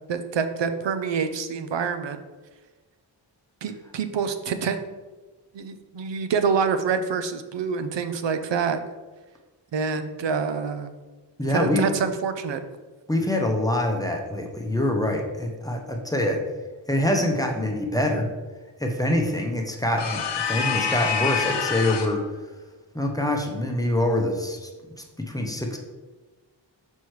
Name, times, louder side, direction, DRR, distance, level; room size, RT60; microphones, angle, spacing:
voice 1, 0.1-2.2 3.6-4.8 5.5-8.8 9.7-10.9 11.4-12.6, right 6 dB, 75° right, 8 dB, 0.6 m, -26 dB
voice 2, 11.4-11.8 13.1-16.4 16.9-18.3 18.8-20.2 20.5-22.2 22.9-24.7 25.2-25.8, left 1 dB, 10° left, 2 dB, 0.7 m, -25 dB
sound 1, 20.0-22.2, left 6 dB, 70° left, 0.7 m, -26 dB
6.1 x 5.4 x 3.1 m, 1.3 s
wide cardioid pair, 110°, 44 cm